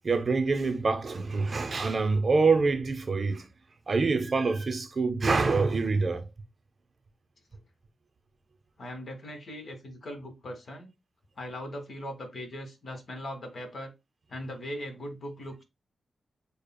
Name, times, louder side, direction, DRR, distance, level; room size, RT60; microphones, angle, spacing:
voice 1, 0.0-3.5 3.9-6.2, right 4 dB, 45° right, 0.8 m, -26 dB
voice 2, 8.8-10.9 11.4-13.9 14.3-15.6, equal, 55° left, 1.7 m, -39 dB
6.7 x 2.3 x 2.2 m
cardioid pair, 80°, 0 cm